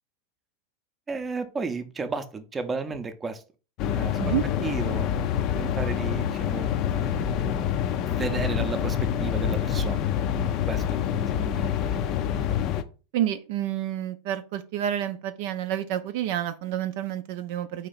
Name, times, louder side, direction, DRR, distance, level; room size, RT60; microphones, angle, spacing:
voice 1, 1.1-3.4 3.9-4.3 4.6-5.1 5.6-7.2 8.1-10.0 10.7-12.0, right 4 dB, 20° right, 0.6 m, -33 dB
sound 1, 3.8-12.8, left 9 dB, 50° left, 0.4 m, -26 dB
voice 2, 13.1-17.9, right 11 dB, 65° right, 0.4 m, -29 dB
4.2 x 2.9 x 3.9 m
hypercardioid pair, 115°, 0 cm